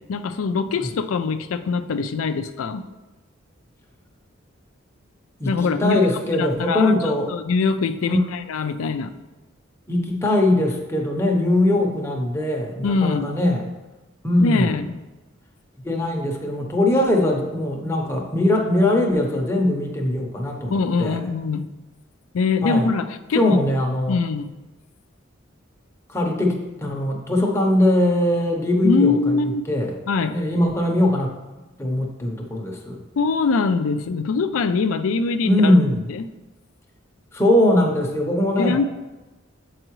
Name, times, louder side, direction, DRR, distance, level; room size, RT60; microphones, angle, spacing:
voice 1, 0.1-2.8 5.5-6.0 6.4-6.9 7.3-9.1 12.8-13.3 14.4-15.0 20.7-21.7 22.3-23.6 24.1-24.5 28.8-29.6 30.1-30.4 33.2-35.8 36.1-36.3 38.6-38.9, left 4 dB, 90° left, 10 dB, 0.4 m, -23 dB
voice 2, 5.4-7.3 8.1-8.2 9.9-13.6 14.2-14.8 15.8-21.2 22.6-22.9 23.3-24.2 26.1-31.3 31.8-33.0 35.4-36.1 37.3-38.8, left 1 dB, 15° left, 0 dB, 0.8 m, -21 dB
7.8 x 4.7 x 3.1 m, 1.1 s
head